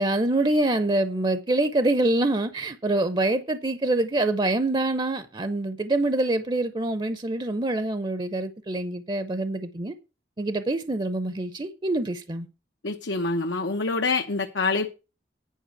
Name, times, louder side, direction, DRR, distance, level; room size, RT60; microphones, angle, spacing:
voice 1, 0.0-9.9 10.4-12.5, right 2 dB, 25° right, 0.6 m, -25 dB
voice 2, 12.8-14.9, left 3 dB, 85° left, 0.9 m, -26 dB
10.0 x 5.1 x 7.9 m
head